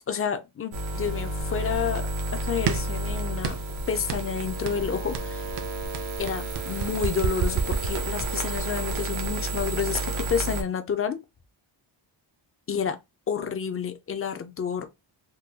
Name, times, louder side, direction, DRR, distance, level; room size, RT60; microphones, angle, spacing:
voice 1, 0.1-2.1 2.4-5.4 6.2-11.2 12.7-13.0 13.3-14.9, left 7 dB, 30° left, 0.4 m, -30 dB
sound 1, 0.7-10.6, right 1 dB, 75° right, 0.9 m, -31 dB
sound 2, 2.7-3.0 3.4-3.8 4.1-4.3 4.7-4.9 5.1-8.5, right 7 dB, 60° right, 0.6 m, -29 dB
3.7 x 2.2 x 2.7 m
wide cardioid pair, 140°, 48 cm